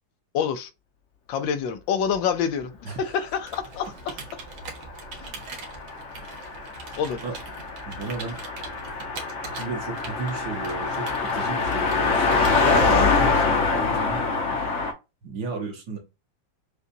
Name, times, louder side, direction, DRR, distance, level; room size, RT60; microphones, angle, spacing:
voice 1, 0.3-0.7 1.3-3.9 5.2-5.4 7.0-7.2, left 7 dB, 75° left, 1.4 m, -27 dB
voice 2, 2.8-3.2 7.2-7.4 7.9-8.4 9.6-12.6 12.8-14.2 15.2-16.0, right 4 dB, 55° right, 1.6 m, -34 dB
Computer keyboard, 3.3-13.6, right 5 dB, 85° right, 2.0 m, -42 dB
Car passing by, 4.8-14.9, left 4 dB, 50° left, 1.0 m, -25 dB
6.7 x 2.4 x 2.6 m
omnidirectional pair, 2.2 m